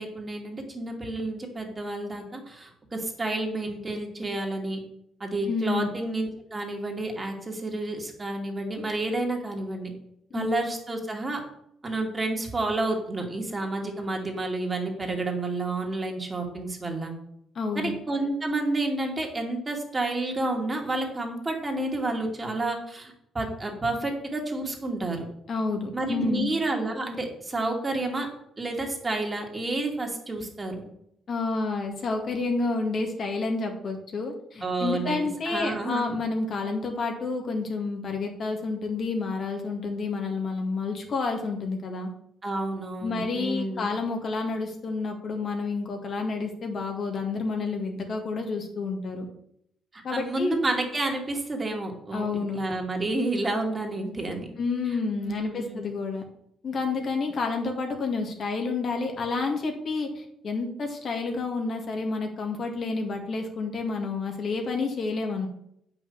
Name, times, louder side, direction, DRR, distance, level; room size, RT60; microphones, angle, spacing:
voice 1, 0.0-4.8 5.2-9.9 10.3-11.4 11.8-17.1 17.7-25.3 25.9-28.3 28.6-30.9 34.6-36.0 42.4-43.9 49.9-52.3 52.5-54.5 54.9-55.0 55.2-55.8, right 2 dB, 25° right, 1 dB, 2.6 m, -30 dB
voice 2, 5.5-5.9 10.3-10.5 17.6-17.9 25.5-26.5 31.3-42.1 43.0-49.3 50.0-50.6 52.1-52.6 54.6-56.2 56.6-65.5, left 3 dB, 50° left, 3 dB, 2.0 m, -29 dB
8.3 x 6.1 x 7.2 m, 0.74 s
cardioid pair, 90°, 0 cm